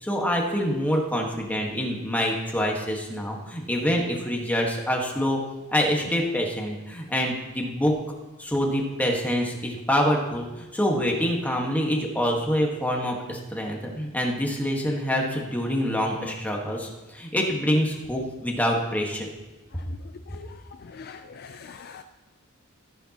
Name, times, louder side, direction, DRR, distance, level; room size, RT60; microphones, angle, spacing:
voice 1, 0.0-5.4 5.7-7.9 8.4-19.3, equal, 5° left, 0 dB, 1.5 m, -26 dB
voice 2, 20.8-22.0, left 6 dB, 45° left, 8 dB, 0.4 m, -43 dB
14.0 x 9.9 x 2.9 m, 1.1 s
head